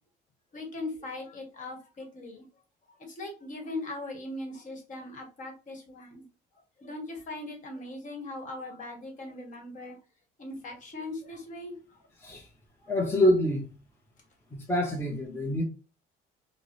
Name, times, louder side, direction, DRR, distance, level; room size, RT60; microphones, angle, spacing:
voice 1, 0.5-2.5 3.0-6.3 6.8-10.0 10.4-11.8 12.8-12.9, left 2 dB, 45° left, 1.3 m, -39 dB
voice 2, 12.9-13.7 14.5-15.6, left 1 dB, 15° left, 0.7 m, -26 dB
4.4 x 2.0 x 3.0 m
cardioid pair, 105°, 17 cm